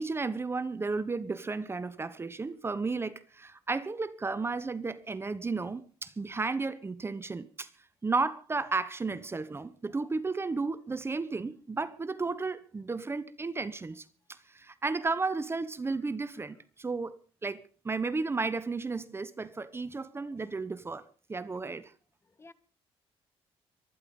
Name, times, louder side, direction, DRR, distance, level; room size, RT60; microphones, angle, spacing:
voice 1, 0.0-7.7 8.0-21.0 21.3-21.9, right 3 dB, 20° right, 1.0 m, -33 dB
voice 2, 9.9-10.1 16.4-16.5 20.3-20.4 22.2-22.5, left 3 dB, 25° left, 1.5 m, -57 dB
24.0 x 10.5 x 5.4 m
cardioid pair, 110°, 11 cm